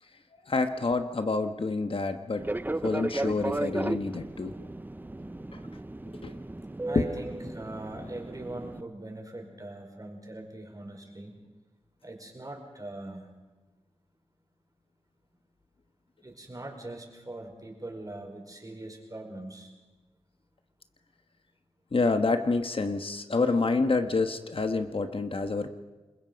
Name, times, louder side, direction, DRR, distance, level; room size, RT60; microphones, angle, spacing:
voice 1, 0.5-2.5 2.8-4.5 5.5-5.6 6.2-6.3 6.9-7.1 21.9-25.7, left 3 dB, 55° left, 7 dB, 1.3 m, -27 dB
Fixed-wing aircraft airplane, 2.4-8.8, right 2 dB, 15° right, 0.6 m, -35 dB
voice 2, 6.8-11.4 12.0-13.3 16.2-19.7, right 2 dB, 35° right, 3 dB, 4.9 m, -41 dB
28.5 x 21.5 x 5.3 m, 1.2 s
wide cardioid pair, 75°, 11 cm